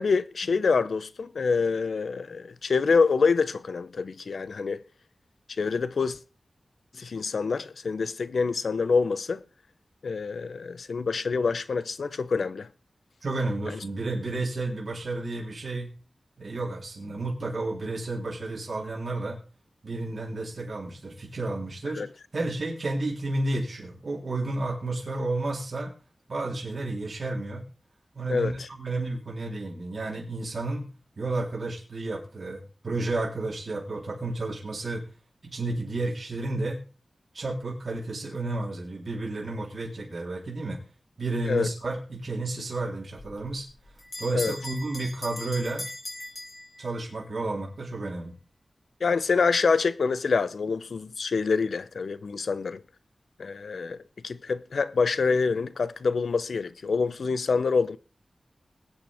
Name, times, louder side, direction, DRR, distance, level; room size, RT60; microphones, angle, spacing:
voice 1, 0.0-4.8 5.6-6.2 6.9-9.4 10.0-12.7 13.7-13.8 21.9-22.1 28.3-28.5 41.5-41.7 44.3-44.5 49.0-52.8 53.4-54.0 54.2-58.0, left 4 dB, 85° left, 0.7 m, -26 dB
voice 2, 13.2-15.9 16.4-19.4 19.8-22.0 22.3-25.9 26.3-27.6 28.1-30.9 31.2-35.0 35.4-36.8 37.3-40.8 41.2-43.7 44.2-45.9 46.8-48.3, right 2 dB, 60° right, 3.6 m, -31 dB
Bell, 43.2-47.3, left 1 dB, 40° left, 5.1 m, -40 dB
21.0 x 8.8 x 3.5 m
wide cardioid pair, 95°, 0 cm